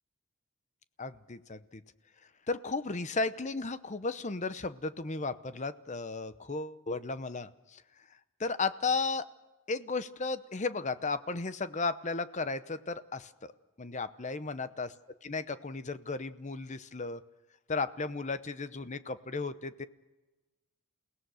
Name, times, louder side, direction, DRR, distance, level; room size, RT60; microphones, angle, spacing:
voice 1, 1.0-1.8 2.5-7.8 8.4-9.3 9.7-13.5 13.8-14.9 15.2-17.2 17.7-19.8, left 3 dB, 35° left, 13 dB, 0.8 m, -34 dB
29.0 x 17.5 x 6.4 m, 1.1 s
head